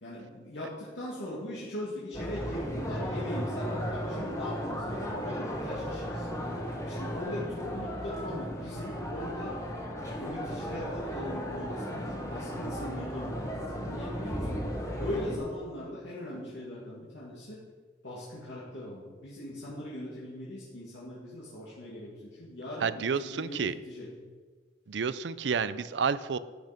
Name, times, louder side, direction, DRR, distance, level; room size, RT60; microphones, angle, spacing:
voice 1, 0.0-6.3 6.8-9.6 10.1-14.6 15.0-17.6 18.0-24.1, left 1 dB, 80° left, -7 dB, 2.4 m, -40 dB
sound 1, 2.1-15.4, equal, 15° left, 1.5 m, -35 dB
voice 2, 22.8-23.7 24.9-26.4, right 6 dB, 75° right, 15 dB, 0.5 m, -30 dB
12.0 x 8.8 x 5.2 m, 1.4 s
head